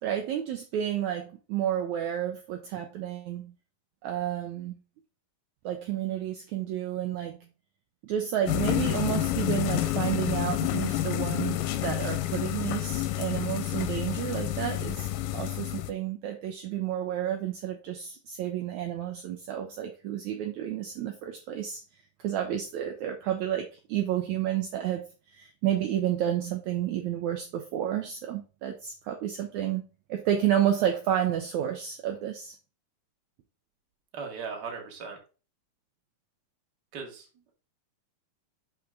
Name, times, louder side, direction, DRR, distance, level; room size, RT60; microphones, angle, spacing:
voice 1, 0.0-3.5 4.0-4.7 5.6-7.4 8.0-15.1 15.3-21.8 22.2-25.0 25.3-32.5, right 11 dB, 75° right, 1.8 m, -30 dB
sound 1, 8.5-15.9, left 13 dB, 80° left, 2.1 m, -29 dB
voice 2, 34.1-35.2 36.9-37.2, right 5 dB, 40° right, 1.7 m, -37 dB
6.1 x 6.0 x 3.7 m
omnidirectional pair, 4.1 m